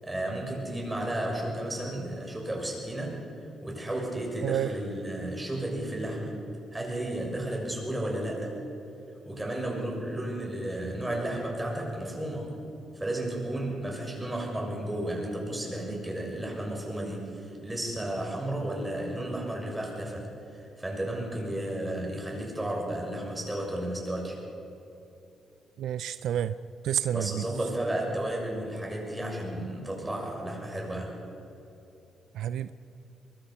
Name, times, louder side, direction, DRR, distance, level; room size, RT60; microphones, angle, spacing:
voice 1, 0.0-3.3 3.6-6.3 6.7-8.5 9.2-12.6 12.9-24.4 27.1-31.1, right 1 dB, 15° right, -1 dB, 6.7 m, -33 dB
voice 2, 4.4-4.8 25.8-26.6 26.8-27.4 32.3-32.7, right 10 dB, 75° right, 13 dB, 0.5 m, -29 dB
23.0 x 22.5 x 5.8 m, 2.8 s
cardioid pair, 90°, 0 cm